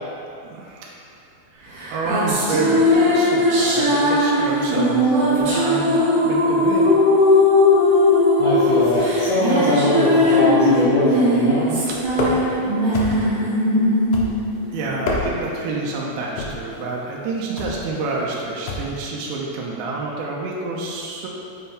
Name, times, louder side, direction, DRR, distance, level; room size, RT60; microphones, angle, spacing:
voice 1, 0.4-1.0 1.6-7.1 11.9-12.0 13.1-13.3 14.7-21.3, right 3 dB, 85° right, -3 dB, 2.6 m, -28 dB
sound 1, 1.8-15.4, left 1 dB, 65° right, 2.9 m, -18 dB
voice 2, 8.4-11.7, left 1 dB, 65° left, -11 dB, 1.9 m, -21 dB
sound 2, 12.1-12.6 12.9-13.4 14.1-14.6 14.9-15.6 16.4-16.7 17.6-17.9 18.7-19.0, left 2 dB, 90° left, 1.8 m, -27 dB
7.8 x 4.4 x 3.4 m, 2.6 s
omnidirectional pair, 4.6 m